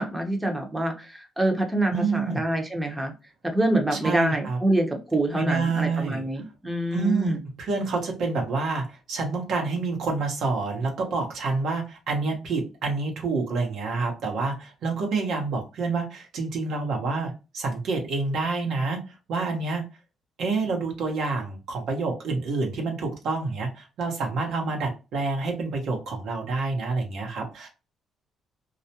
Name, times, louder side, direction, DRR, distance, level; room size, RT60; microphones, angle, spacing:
voice 1, 0.0-3.1 3.4-7.4, right 1 dB, 10° right, 2 dB, 0.7 m, -26 dB
voice 2, 1.9-2.4 3.9-4.6 5.4-6.2 6.9-19.8 20.4-27.7, right 3 dB, 75° right, 2 dB, 0.9 m, -28 dB
2.4 x 2.1 x 2.7 m, 0.29 s
cardioid pair, 90°, 0 cm